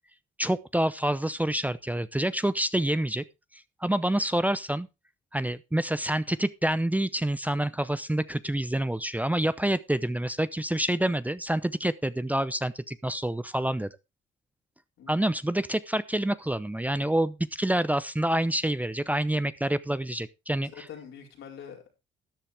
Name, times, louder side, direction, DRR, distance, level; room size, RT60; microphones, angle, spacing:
voice 1, 0.4-3.2 3.5-4.9 5.3-13.9 15.1-20.7, right 1 dB, 10° right, 0.7 m, -27 dB
voice 2, 20.6-22.0, left 8 dB, 80° left, 4.6 m, -45 dB
13.0 x 10.0 x 3.4 m
cardioid pair, 90°, 20 cm